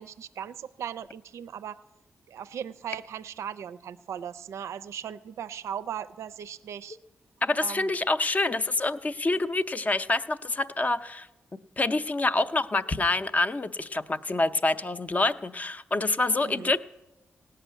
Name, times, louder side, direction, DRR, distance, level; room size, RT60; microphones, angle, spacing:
voice 1, 0.0-1.8 2.3-7.0 7.6-7.9 9.3-9.5 16.5-16.7, right 9 dB, 85° right, 13 dB, 0.4 m, -38 dB
voice 2, 7.4-11.3 11.8-16.8, left 2 dB, 30° left, 12 dB, 0.6 m, -26 dB
17.0 x 5.7 x 9.1 m, 0.99 s
cardioid pair, 65°, 5 cm